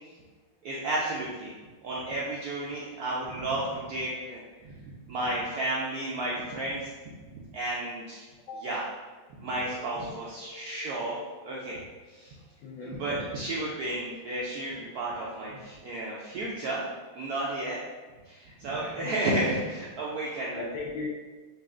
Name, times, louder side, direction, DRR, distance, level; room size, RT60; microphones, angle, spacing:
voice 1, 0.6-1.5 1.8-6.9 7.3-8.2 8.6-8.8 9.4-11.2 11.4-11.8 12.1-12.4 12.9-16.8 17.1-17.8 18.3-20.6, right 1 dB, 80° right, -5 dB, 0.8 m, -32 dB
voice 2, 9.5-11.5 12.6-13.0 18.8-19.1 20.5-21.1, left 3 dB, 75° left, -3 dB, 1.2 m, -41 dB
5.5 x 2.4 x 2.4 m, 1.3 s
omnidirectional pair, 2.2 m